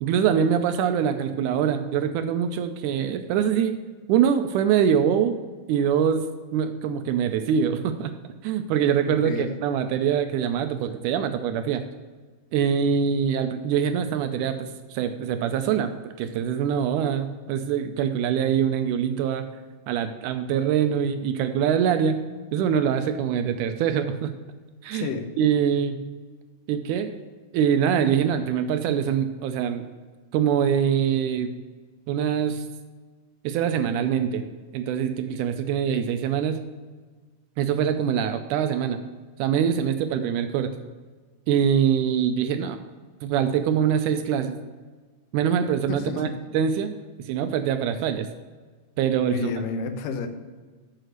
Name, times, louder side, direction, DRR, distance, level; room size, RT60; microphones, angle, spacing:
voice 1, 0.0-3.8 4.1-5.4 5.7-6.3 6.5-8.1 8.4-11.9 12.5-19.5 19.9-22.2 22.5-24.3 24.8-25.1 25.4-26.0 26.7-27.1 27.5-29.9 30.3-31.6 32.1-32.6 33.4-34.5 34.7-36.6 37.6-39.0 39.4-40.8 41.5-42.8 43.2-44.6 45.3-46.3 46.5-46.9 47.3-48.3 49.0-49.5, right 8 dB, 80° right, 8 dB, 1.9 m, -24 dB
voice 2, 9.1-9.5 24.9-25.3 45.9-46.4 49.3-50.3, left 4 dB, 85° left, 7 dB, 2.4 m, -30 dB
6.6 x 6.4 x 6.4 m, 1.4 s
omnidirectional pair, 3.8 m